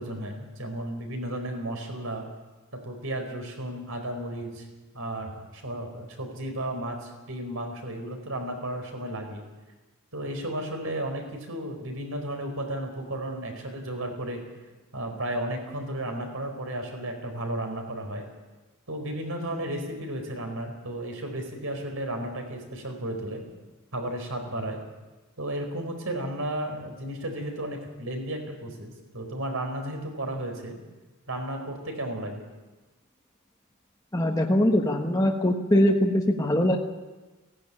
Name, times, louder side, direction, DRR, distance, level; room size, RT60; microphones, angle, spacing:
voice 1, 0.0-2.2 2.8-4.6 4.9-9.4 10.1-14.4 14.9-18.2 18.9-23.4 23.9-24.8 25.4-30.8 31.3-32.4, right 1 dB, 70° right, 4 dB, 4.6 m, -33 dB
voice 2, 34.1-36.8, left 1 dB, 15° left, 0 dB, 1.3 m, -22 dB
17.0 x 16.5 x 9.9 m, 1.2 s
head